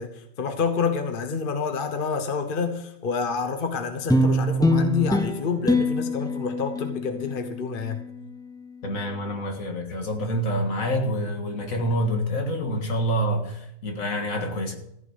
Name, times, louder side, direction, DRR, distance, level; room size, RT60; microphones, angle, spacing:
voice 1, 0.0-8.0, left 5 dB, 40° left, 1.1 m, -28 dB
sound 1, 4.1-8.7, left 1 dB, 5° left, 0.3 m, -25 dB
voice 2, 8.8-14.7, equal, 80° left, 2.2 m, -27 dB
14.5 x 5.9 x 8.0 m
omnidirectional pair, 1.4 m